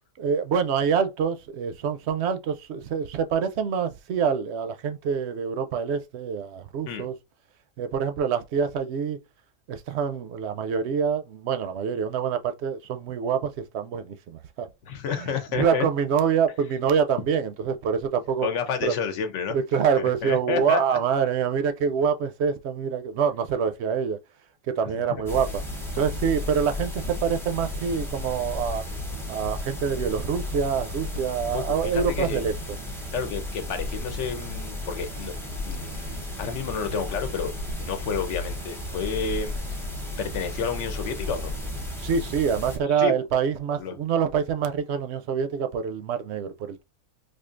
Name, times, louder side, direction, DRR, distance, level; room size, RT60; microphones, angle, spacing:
voice 1, 0.2-7.1 7.8-9.2 9.7-14.7 15.1-18.5 18.8-19.0 19.5-24.2 24.7-25.5 25.9-28.9 29.3-32.5 42.0-46.8, right 7 dB, 65° right, 0.8 m, -26 dB
voice 2, 14.8-15.8 18.4-19.6 20.0-21.0 31.5-32.5 33.1-35.3 35.6-37.5 37.8-39.5 40.2-41.5 42.9-43.1 43.8-43.9, left 6 dB, 65° left, 1.0 m, -30 dB
sound 1, 25.3-42.8, left 1 dB, 5° left, 0.6 m, -33 dB
4.3 x 2.6 x 2.5 m
omnidirectional pair, 1.4 m